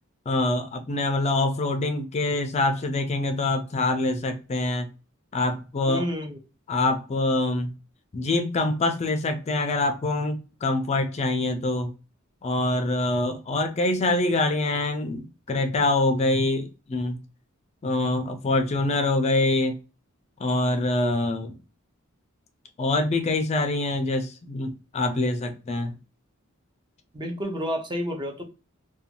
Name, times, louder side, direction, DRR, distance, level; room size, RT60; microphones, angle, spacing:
voice 1, 0.3-4.9 5.3-6.0 6.7-7.7 8.1-11.9 12.4-17.2 17.8-19.7 20.4-21.5 22.8-25.9, left 2 dB, 30° left, 0.4 m, -25 dB
voice 2, 5.9-6.4 27.1-28.4, equal, 20° right, 0.5 m, -30 dB
2.5 x 2.2 x 2.7 m
head